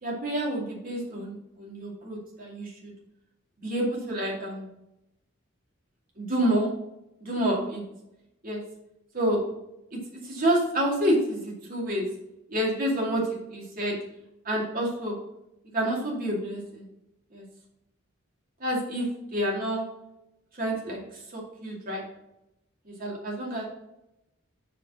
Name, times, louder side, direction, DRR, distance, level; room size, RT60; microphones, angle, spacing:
voice 1, 0.0-2.9 3.6-4.7 6.2-6.7 7.2-7.8 8.4-8.6 9.1-9.4 10.2-12.1 12.5-14.0 14.4-15.2 15.7-16.9 17.3-17.4 18.6-19.8 20.6-21.0 21.3-22.0 22.9-23.7, right 1 dB, 45° right, -3 dB, 2.3 m, -28 dB
5.3 x 5.3 x 6.0 m, 0.86 s
head